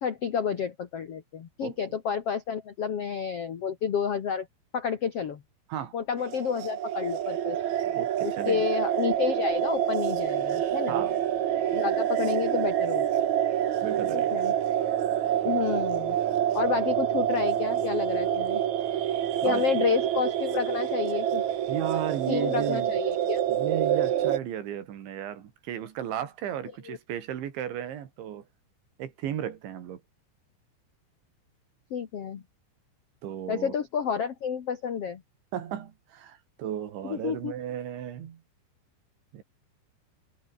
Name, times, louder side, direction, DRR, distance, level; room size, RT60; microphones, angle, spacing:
voice 1, 0.0-4.5 4.7-5.4 5.9-7.6 8.2-11.0 11.7-13.1 14.1-14.5 15.4-16.2 16.5-18.6 19.4-21.4 22.3-23.4 26.9-27.0 31.9-32.4 33.5-35.2 37.0-37.5, left 7 dB, 75° left, 1.4 m, -30 dB
sound 1, 6.2-24.4, right 10 dB, 60° right, 2.0 m, -27 dB
voice 2, 7.8-8.6 10.9-11.2 13.8-14.4 19.4-19.9 21.7-22.9 23.5-28.4 29.0-30.0 33.2-33.7 35.5-38.4 39.3-39.4, right 10 dB, 80° right, 4.9 m, -35 dB
omnidirectional pair, 5.2 m